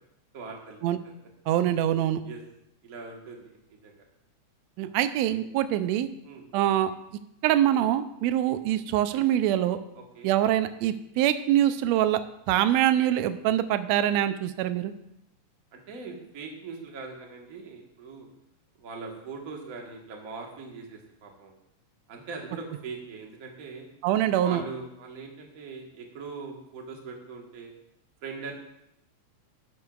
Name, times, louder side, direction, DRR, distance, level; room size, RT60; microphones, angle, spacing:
voice 1, 0.3-0.8 2.2-2.4 2.8-4.0 6.2-6.4 9.9-10.3 15.7-18.3 18.8-21.6 22.1-23.9 24.4-27.7 28.2-28.5, right 4 dB, 40° right, 1 dB, 1.4 m, -41 dB
voice 2, 1.5-2.2 4.8-6.1 6.5-6.9 7.4-9.8 10.2-12.2 12.5-14.9 24.0-24.6, right 12 dB, 80° right, 11 dB, 1.7 m, -24 dB
12.5 x 12.0 x 2.4 m, 0.81 s
omnidirectional pair, 3.3 m